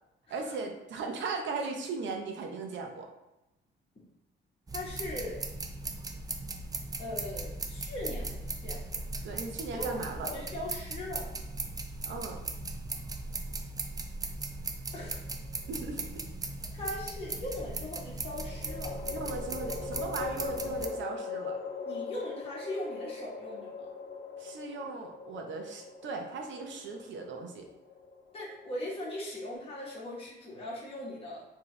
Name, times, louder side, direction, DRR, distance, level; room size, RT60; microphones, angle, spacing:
voice 1, 0.3-3.1 9.2-10.3 12.1-12.4 15.7-16.0 19.1-21.6 24.4-27.7, right 4 dB, 70° right, 3 dB, 0.8 m, -38 dB
voice 2, 4.7-5.4 7.0-9.0 9.7-11.3 14.9-15.2 16.7-19.0 21.9-23.9 28.3-31.4, left 1 dB, 30° left, -6 dB, 1.4 m, -39 dB
sound 1, 4.7-20.9, right 2 dB, 20° right, 0.4 m, -38 dB
sound 2, 15.1-15.9 18.2-29.5, left 5 dB, 90° left, 0.9 m, -41 dB
4.5 x 3.0 x 3.2 m, 0.94 s
cardioid pair, 90°, 20 cm